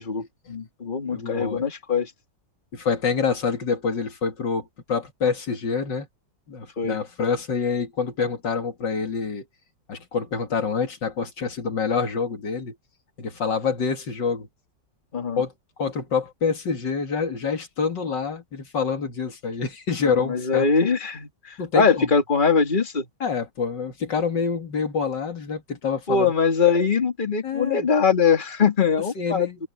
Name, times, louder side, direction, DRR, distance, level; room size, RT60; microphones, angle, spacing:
voice 1, 0.0-2.1 6.8-7.0 15.1-15.4 20.0-23.1 26.1-29.5, left 5 dB, 25° left, 2.4 m, -22 dB
voice 2, 1.1-1.6 2.7-6.1 6.5-9.4 9.9-12.8 13.2-14.5 15.4-15.5 15.8-20.7 21.6-22.1 23.2-26.3 27.4-27.9 29.2-29.6, left 5 dB, 75° left, 2.9 m, -26 dB
omnidirectional pair, 1.9 m